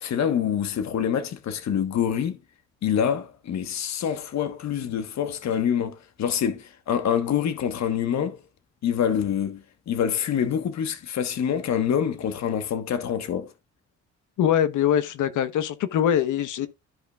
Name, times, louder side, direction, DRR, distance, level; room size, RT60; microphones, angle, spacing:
voice 1, 0.0-2.4 2.8-8.4 8.8-13.5, left 8 dB, 65° left, 1.2 m, -26 dB
voice 2, 14.4-16.7, left 9 dB, 80° left, 1.1 m, -23 dB
13.5 x 5.2 x 2.4 m
cardioid pair, 90°, 30 cm